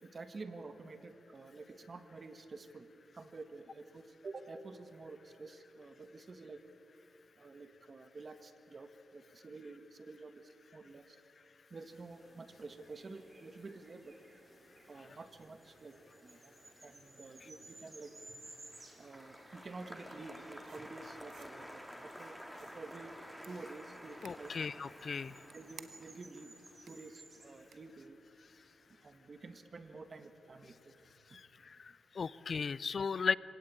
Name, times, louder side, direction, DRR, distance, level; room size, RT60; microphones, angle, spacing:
voice 1, 0.0-2.9 3.1-6.6 7.4-11.2 11.7-14.2 14.9-16.5 16.8-18.2 19.0-23.2 23.5-24.5 25.5-26.5 26.9-28.2 28.9-32.4, right 3 dB, 45° right, 9 dB, 1.8 m, -50 dB
sound 1, 11.9-28.1, right 2 dB, 30° right, 4.0 m, -59 dB
Applause, 18.1-28.5 28.8-29.4, equal, ahead, 2.1 m, -52 dB
sound 2, 20.6-21.5 22.5-22.9 23.4-23.5 24.2-24.4 25.1-26.2 26.9-27.0 27.7-27.8, right 8 dB, 80° right, 1.3 m, -56 dB
voice 2, 24.2-25.4 31.3-33.4, left 5 dB, 55° left, 19 dB, 0.4 m, -36 dB
25.5 x 17.5 x 8.9 m, 2.9 s
cardioid pair, 80°, 0 cm